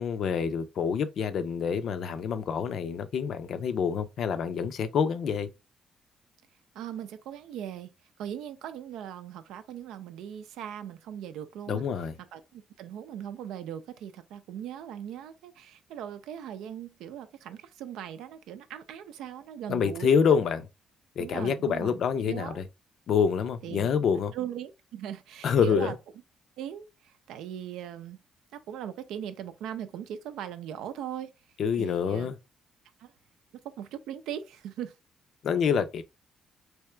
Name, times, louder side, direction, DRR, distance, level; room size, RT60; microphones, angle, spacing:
voice 1, 0.0-5.5 11.7-12.1 19.7-20.7 21.2-22.6 23.1-24.3 25.4-25.9 31.6-32.4 35.4-36.0, left 6 dB, 65° left, 0.5 m, -27 dB
voice 2, 6.7-7.9 8.2-11.8 12.3-20.4 21.2-22.0 22.3-22.6 23.6-23.9 24.3-26.0 26.6-28.2 28.5-31.3 31.8-32.3 33.0-33.1 33.6-34.9, right 10 dB, 90° right, 0.4 m, -39 dB
3.4 x 2.8 x 3.2 m
cardioid pair, 90°, 0 cm